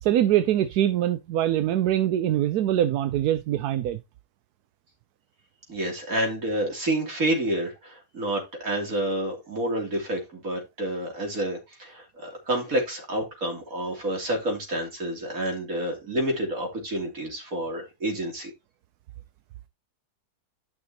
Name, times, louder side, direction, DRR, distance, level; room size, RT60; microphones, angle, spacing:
voice 1, 0.0-4.0, right 12 dB, 75° right, 1.1 m, -23 dB
voice 2, 5.7-18.5, right 1 dB, 55° right, 3.4 m, -29 dB
12.0 x 6.1 x 2.8 m
omnidirectional pair, 1.7 m